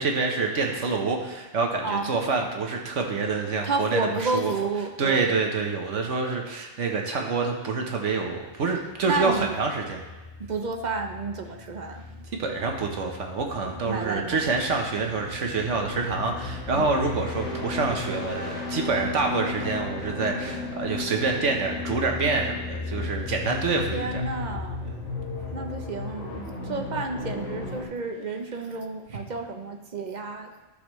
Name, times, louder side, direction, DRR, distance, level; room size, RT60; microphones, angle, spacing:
voice 1, 0.0-4.5 5.0-10.0 12.4-24.2 24.8-25.0, right 4 dB, 65° right, 2 dB, 1.3 m, -27 dB
voice 2, 1.8-2.1 3.6-5.3 9.0-9.6 10.4-12.0 13.8-14.4 16.7-16.9 23.9-24.9 25.5-30.5, right 3 dB, 45° right, 4 dB, 0.6 m, -31 dB
sound 1, 8.8-27.8, left 3 dB, 60° left, 2.2 m, -35 dB
12.0 x 6.6 x 3.1 m, 1.2 s
omnidirectional pair, 1.4 m